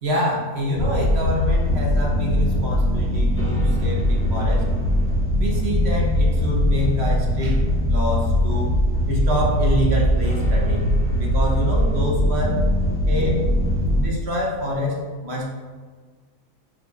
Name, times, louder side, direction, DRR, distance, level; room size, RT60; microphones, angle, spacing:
voice 1, 0.0-4.6 5.4-8.7 9.1-12.6 13.1-13.5 13.9-15.5, left 1 dB, 45° right, -2 dB, 1.3 m, -26 dB
sound 1, 0.7-14.0, equal, 10° left, 0.9 m, -21 dB
9.4 x 4.3 x 2.8 m, 1.5 s
omnidirectional pair, 1.7 m